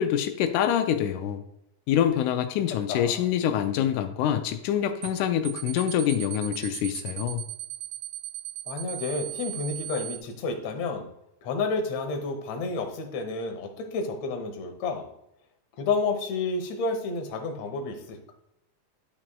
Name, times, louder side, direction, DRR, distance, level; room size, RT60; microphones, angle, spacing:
voice 1, 0.0-1.4 1.9-7.4, left 10 dB, 90° left, 6 dB, 2.1 m, -25 dB
voice 2, 2.9-3.2 8.7-11.1 11.4-15.1 15.8-18.3, left 3 dB, 65° left, 4 dB, 2.2 m, -30 dB
sound 1, 5.0-5.2 5.5-10.2, right 14 dB, 75° right, 1.8 m, -37 dB
11.0 x 5.9 x 2.2 m, 0.82 s
omnidirectional pair, 3.4 m